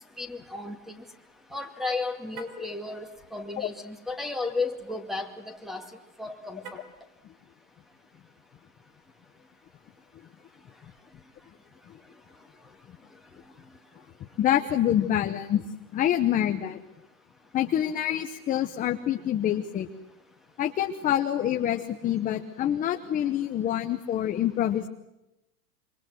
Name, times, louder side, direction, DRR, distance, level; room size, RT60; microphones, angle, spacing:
voice 1, 0.2-1.0 1.5-5.9 6.2-6.8, left 3 dB, ahead, 9 dB, 2.3 m, -34 dB
Car, 2.3-2.7 6.6-7.1, right 4 dB, 75° right, 5.1 m, -44 dB
voice 2, 14.4-15.6 15.9-16.8 17.5-19.9 20.6-24.9, left 11 dB, 20° left, 6 dB, 0.9 m, -26 dB
27.0 x 25.5 x 7.8 m, 0.93 s
supercardioid pair, 150°, 45 cm